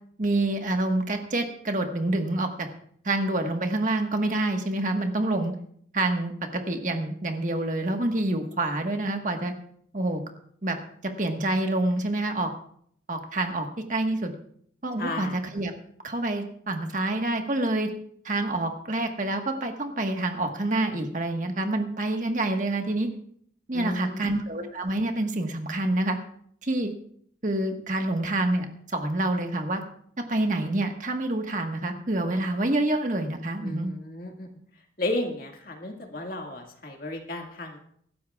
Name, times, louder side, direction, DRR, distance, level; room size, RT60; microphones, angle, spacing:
voice 1, 0.2-2.7 3.0-5.5 5.9-9.5 9.9-10.2 10.6-10.8 11.0-12.5 13.1-14.3 14.8-15.7 16.0-17.9 18.2-23.1 23.7-26.2 26.6-26.9 27.4-29.8 30.2-33.9, right 2 dB, 45° right, 4 dB, 1.4 m, -27 dB
voice 2, 15.0-15.4 23.7-24.4 33.6-34.5 35.0-37.8, left 2 dB, 50° left, 2 dB, 2.0 m, -33 dB
24.0 x 12.0 x 2.4 m, 0.65 s
head